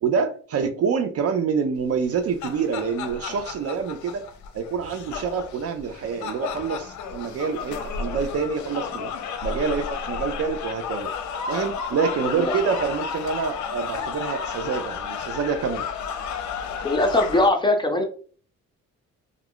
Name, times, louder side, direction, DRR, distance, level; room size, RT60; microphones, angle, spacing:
voice 1, 0.0-4.2 4.5-9.1 9.4-11.1 11.5-15.9, right 6 dB, 55° right, 8 dB, 0.4 m, -26 dB
sound 1, 2.0-17.5, left 6 dB, 70° left, 0.5 m, -32 dB
voice 2, 12.4-12.8 16.8-18.0, left 2 dB, 15° left, 4 dB, 0.6 m, -21 dB
2.3 x 2.2 x 3.5 m, 0.42 s
cardioid pair, 90°, 30 cm